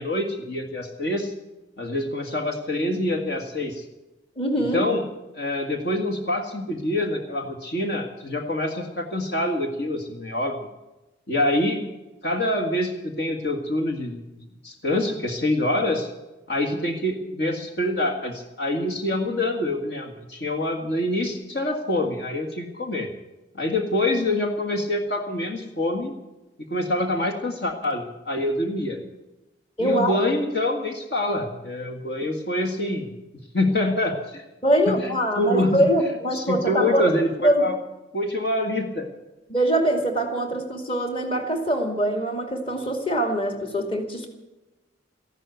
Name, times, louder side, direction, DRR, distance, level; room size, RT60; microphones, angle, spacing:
voice 1, 0.0-1.3 1.8-3.8 4.7-5.0 5.4-10.6 11.3-11.8 12.2-16.1 16.5-23.1 23.6-26.1 26.7-29.0 29.8-33.1 33.5-34.4 34.9-35.0 35.4-35.8 36.3-37.7 38.1-39.1, left 1 dB, 60° left, 3 dB, 1.9 m, -26 dB
voice 2, 4.4-4.8 29.8-30.2 34.6-37.2 37.4-37.7 39.5-44.3, right 1 dB, 30° left, 5 dB, 2.3 m, -23 dB
14.5 x 12.0 x 8.0 m, 1.0 s
head